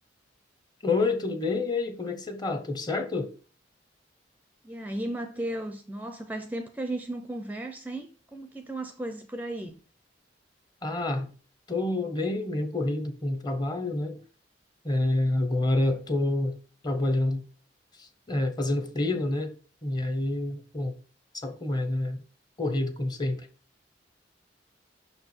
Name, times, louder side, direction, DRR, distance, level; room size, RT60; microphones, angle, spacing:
voice 1, 0.8-3.3 10.8-11.3 11.7-14.2 14.8-16.6 16.8-17.4 18.0-19.5 19.8-20.9 21.3-22.2 22.6-23.5, left 2 dB, 20° left, 0.8 m, -28 dB
voice 2, 4.6-9.8, right 1 dB, 10° right, 0.5 m, -35 dB
6.2 x 4.5 x 4.3 m
head